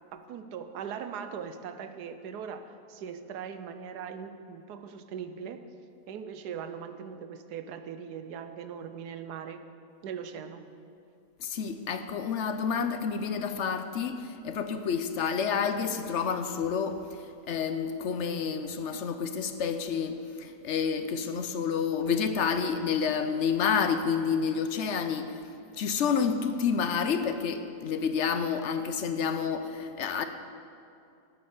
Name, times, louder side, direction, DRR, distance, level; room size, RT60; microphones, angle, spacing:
voice 1, 0.1-5.6 6.1-9.7 10.0-10.7 28.7-28.8, right 7 dB, 85° right, 9 dB, 1.3 m, -40 dB
voice 2, 11.4-17.0 17.5-25.3 25.8-30.2, left 6 dB, 60° left, 9 dB, 0.8 m, -29 dB
12.5 x 8.7 x 6.6 m, 2.5 s
omnidirectional pair, 1.7 m